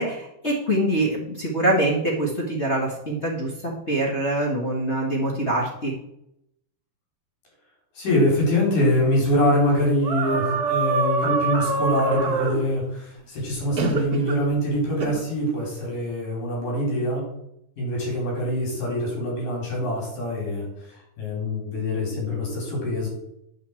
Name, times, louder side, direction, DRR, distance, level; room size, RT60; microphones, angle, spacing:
voice 1, 0.0-5.9, right 1 dB, 40° left, -4 dB, 0.9 m, -24 dB
voice 2, 7.9-17.3 17.8-23.1, left 1 dB, 65° left, -2 dB, 6.0 m, -24 dB
sound 1, 10.0-12.6 13.8-14.4 15.0-15.2, right 4 dB, 80° right, 0.8 m, -24 dB
9.4 x 5.7 x 7.4 m, 0.80 s
omnidirectional pair, 4.1 m